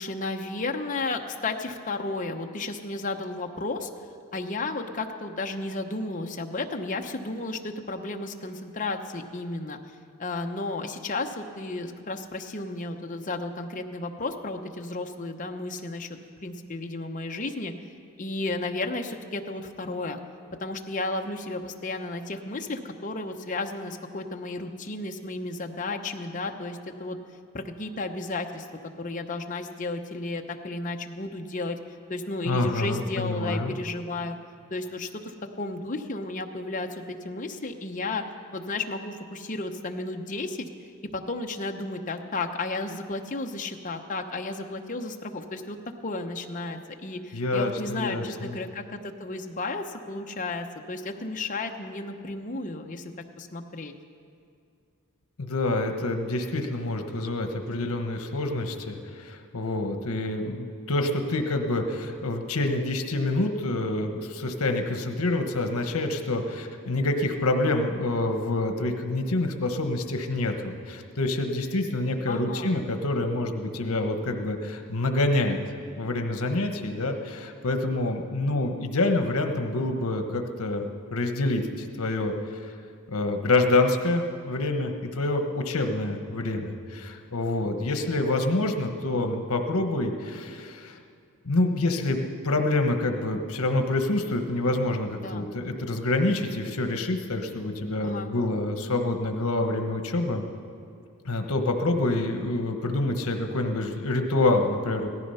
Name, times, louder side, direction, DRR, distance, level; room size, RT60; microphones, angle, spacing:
voice 1, 0.0-3.9 4.3-9.8 10.2-16.1 16.4-17.7 18.2-20.2 20.6-27.2 27.5-28.7 29.0-31.8 32.1-34.4 34.7-38.2 38.5-40.7 41.1-45.8 46.0-53.9 72.3-72.8 95.2-95.5 98.0-98.3, left 2 dB, 35° left, 4 dB, 0.9 m, -33 dB
voice 2, 32.4-33.7 47.3-48.6 55.4-75.6 76.0-82.3 83.1-91.0 91.4-100.4 101.2-105.1, left 2 dB, 75° left, 5 dB, 1.2 m, -27 dB
17.5 x 14.0 x 5.6 m, 2.3 s
head